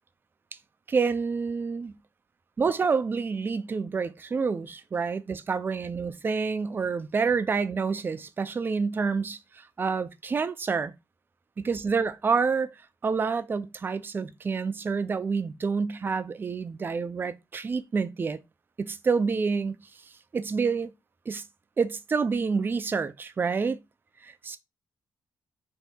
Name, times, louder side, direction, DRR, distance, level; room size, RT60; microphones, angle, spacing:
voice 1, 0.9-1.9 2.6-10.9 11.6-12.8 13.0-18.4 18.8-19.8 20.3-20.9 21.3-21.4 21.8-23.8 24.2-24.6, right 5 dB, 30° right, 0.4 m, -28 dB
3.4 x 2.7 x 4.0 m
cardioid pair, 120°, 7 cm